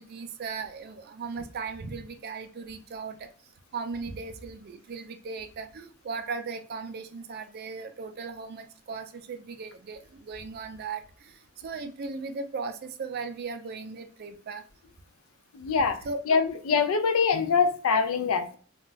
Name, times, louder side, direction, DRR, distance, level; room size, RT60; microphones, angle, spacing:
voice 1, 0.0-3.2 3.7-10.0 10.3-11.0 11.6-14.6 16.0-16.2, right 4 dB, 45° right, 0.4 m, -37 dB
voice 2, 15.5-16.0 16.3-18.6, left 5 dB, 75° left, 0.4 m, -24 dB
2.3 x 2.1 x 3.8 m
head